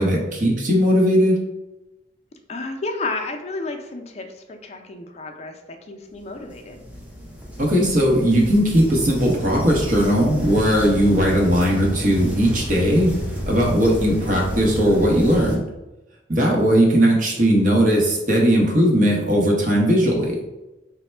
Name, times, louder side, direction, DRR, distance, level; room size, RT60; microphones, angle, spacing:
voice 1, 0.0-1.4 7.6-13.1 13.5-15.6 16.3-20.4, equal, 45° right, -1 dB, 0.8 m, -18 dB
voice 2, 2.5-5.6 5.9-6.8, left 3 dB, 35° left, 4 dB, 0.4 m, -31 dB
sound 1, 6.4-15.6, equal, 5° right, 0.6 m, -31 dB
3.3 x 2.1 x 4.2 m, 1.0 s
head